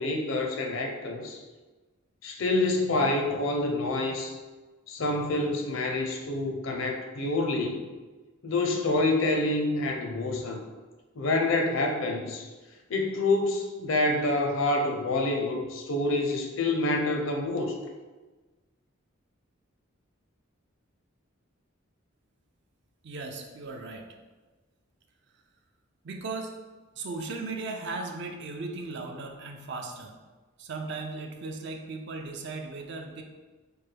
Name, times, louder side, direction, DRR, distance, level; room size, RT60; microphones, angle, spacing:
voice 1, 0.0-1.4 2.2-4.3 4.9-7.9 8.4-10.6 11.2-12.4 12.9-17.8, left 2 dB, 70° left, 2 dB, 0.5 m, -27 dB
voice 2, 23.0-24.1 26.0-26.5 27.0-30.2 30.6-33.2, right 3 dB, 55° right, 3 dB, 0.4 m, -37 dB
4.4 x 2.2 x 3.3 m, 1.3 s
head